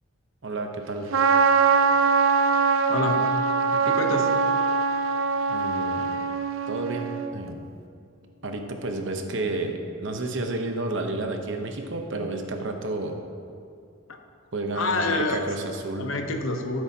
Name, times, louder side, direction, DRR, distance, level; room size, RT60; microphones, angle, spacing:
voice 1, 0.4-1.1 5.5-6.2 6.7-7.7 8.4-13.2 14.5-16.1, right 2 dB, 65° right, 4 dB, 0.9 m, -31 dB
Trumpet, 1.1-7.3, right 5 dB, 90° right, 0.5 m, -22 dB
voice 2, 2.9-3.2 3.7-4.3 14.1-14.2 14.7-15.4 16.0-16.8, left 2 dB, 75° left, 4 dB, 0.9 m, -27 dB
14.0 x 7.9 x 2.8 m, 2.4 s
head